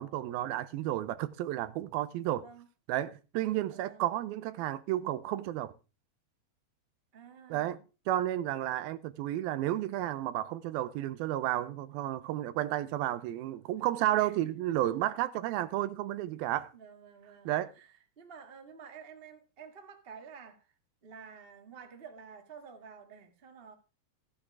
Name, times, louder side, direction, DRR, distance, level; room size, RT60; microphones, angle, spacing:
voice 1, 0.0-2.4 2.9-5.7 7.5-7.8 8.1-16.7 17.5-17.7, right 14 dB, 85° right, 2.6 m, -32 dB
voice 2, 2.2-2.7 3.7-4.1 7.1-7.8 14.1-14.3 14.7-14.9 16.7-17.5 17.7-20.7 21.0-23.7, right 6 dB, 40° right, 0.8 m, -51 dB
14.5 x 8.6 x 4.7 m
omnidirectional pair, 4.2 m